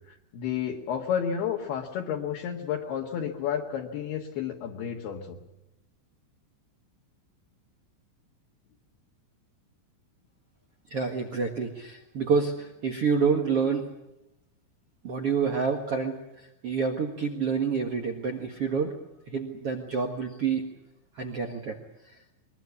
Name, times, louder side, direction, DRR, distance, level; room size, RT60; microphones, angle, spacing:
voice 1, 0.1-5.4, left 8 dB, 65° left, 0 dB, 3.2 m, -31 dB
voice 2, 10.9-13.9 15.0-18.9 19.3-20.6 21.1-21.8, right 5 dB, 90° right, 3 dB, 1.2 m, -28 dB
23.0 x 21.5 x 8.4 m, 0.93 s
omnidirectional pair, 5.5 m